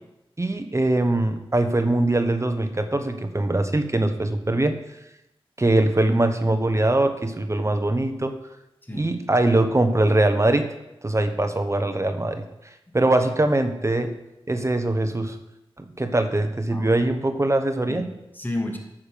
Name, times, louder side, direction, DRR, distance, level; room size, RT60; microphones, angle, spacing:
voice 1, 0.4-4.8 5.6-8.3 8.9-10.7 11.0-12.4 12.9-14.1 14.5-15.4 15.8-18.1, right 2 dB, 30° right, 7 dB, 1.2 m, -22 dB
voice 2, 16.7-17.0 17.9-18.8, left 1 dB, 20° left, 2 dB, 2.6 m, -32 dB
9.6 x 7.4 x 6.9 m, 0.90 s
cardioid pair, 45°, 10 cm